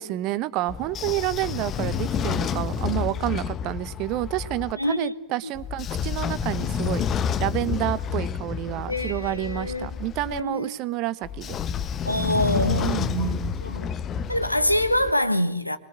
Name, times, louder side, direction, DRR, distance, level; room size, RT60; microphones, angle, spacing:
voice 1, 0.0-7.0 7.4-11.5 12.8-13.6, right 15 dB, 40° right, 1.1 m, -29 dB
Train / Sliding door, 0.7-4.7 5.5-10.4 11.2-15.1, left 7 dB, 25° left, 1.1 m, -29 dB
voice 2, 4.7-5.3 8.9-9.9 10.3-10.8 12.0-13.9 14.3-15.8, left 1 dB, 85° left, 1.5 m, -25 dB
26.0 x 22.5 x 7.5 m
figure-of-eight pair, 90°, 0 cm